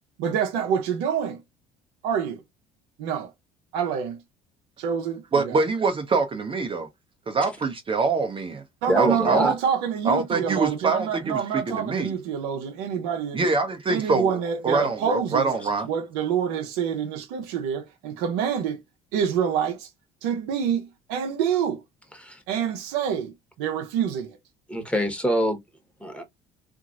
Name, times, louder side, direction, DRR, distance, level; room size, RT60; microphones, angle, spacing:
voice 1, 0.2-1.4 2.0-2.4 3.0-3.3 3.7-4.2 4.8-5.6 8.8-13.4 13.9-15.5 15.9-18.8 19.1-19.9 20.2-21.8 22.5-24.4, right 8 dB, 70° right, 0.7 m, -27 dB
voice 2, 5.3-6.9 7.3-8.6 9.0-9.5 10.0-12.1 13.3-14.4 14.6-15.9, right 4 dB, 30° right, 0.7 m, -24 dB
voice 3, 8.9-9.5 22.1-22.4 24.7-25.6 26.0-26.2, equal, 5° left, 1.2 m, -25 dB
2.8 x 2.5 x 2.5 m
hypercardioid pair, 60°, 18 cm